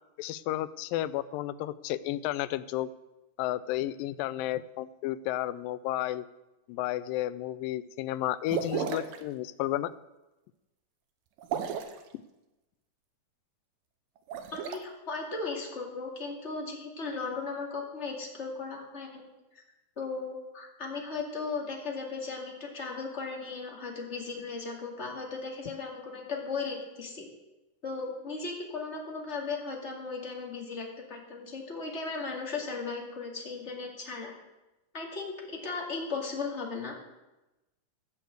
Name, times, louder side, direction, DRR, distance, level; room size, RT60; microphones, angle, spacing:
voice 1, 0.2-2.9 3.4-6.3 6.7-9.9, left 14 dB, 85° left, 16 dB, 2.3 m, -32 dB
sound 1, 8.5-9.2 11.4-12.0 14.2-14.8, right 8 dB, 80° right, 2.7 m, -33 dB
voice 2, 14.5-19.2 19.5-19.6 20.0-27.3 27.8-34.3 34.9-36.9, left 4 dB, 25° left, -1 dB, 2.1 m, -36 dB
16.0 x 6.7 x 7.8 m, 1.0 s
omnidirectional pair, 3.9 m